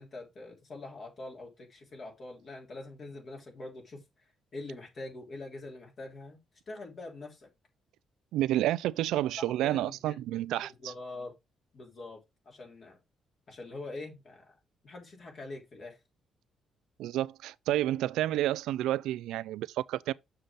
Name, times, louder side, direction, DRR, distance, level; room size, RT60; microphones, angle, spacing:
voice 1, 0.0-4.0 4.5-6.4 6.7-7.5 9.4-10.2 10.8-11.3 11.7-13.0 13.5-14.5 14.8-16.0, left 2 dB, 50° left, 3.5 m, -44 dB
voice 2, 8.3-10.9 17.0-20.1, right 14 dB, 90° right, 0.3 m, -30 dB
6.6 x 5.7 x 3.7 m
cardioid pair, 90°, 0 cm